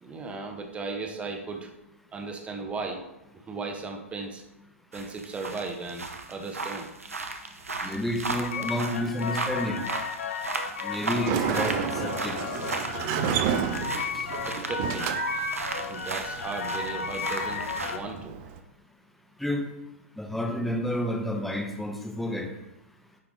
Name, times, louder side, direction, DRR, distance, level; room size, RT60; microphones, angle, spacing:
voice 1, 0.0-1.7 2.1-3.0 3.3-4.4 4.9-6.9 14.5-18.3, right 3 dB, 15° right, 3 dB, 1.1 m, -36 dB
sound 1, 4.9-18.0, right 3 dB, 80° right, 0.9 m, -36 dB
voice 2, 7.8-9.8 10.8-12.4 14.1-14.2 19.4-19.6 20.2-22.5, left 1 dB, ahead, 2 dB, 1.0 m, -30 dB
sound 2, 8.4-18.0, left 6 dB, 65° left, 0.6 m, -34 dB
Sliding door, 11.0-18.6, right 8 dB, 35° right, 0.6 m, -32 dB
9.8 x 3.6 x 3.8 m, 0.90 s
figure-of-eight pair, 105°, 8 cm